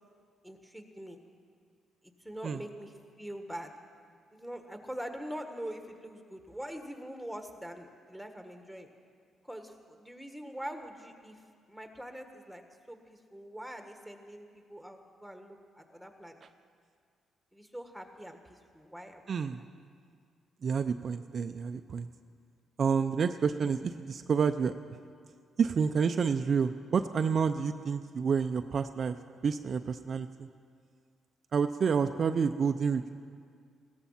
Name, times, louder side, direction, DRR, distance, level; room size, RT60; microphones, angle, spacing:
voice 1, 0.4-1.2 2.0-3.7 4.3-8.9 9.4-11.4 11.7-12.6 12.9-16.5 17.5-19.5 31.9-32.2, equal, ahead, 5 dB, 1.6 m, -44 dB
voice 2, 19.3-19.6 20.6-22.1 22.8-24.7 25.6-29.2 29.4-30.5 31.5-33.1, right 6 dB, 50° right, 8 dB, 0.5 m, -29 dB
16.5 x 13.5 x 5.7 m, 2.1 s
cardioid pair, 90°, 0 cm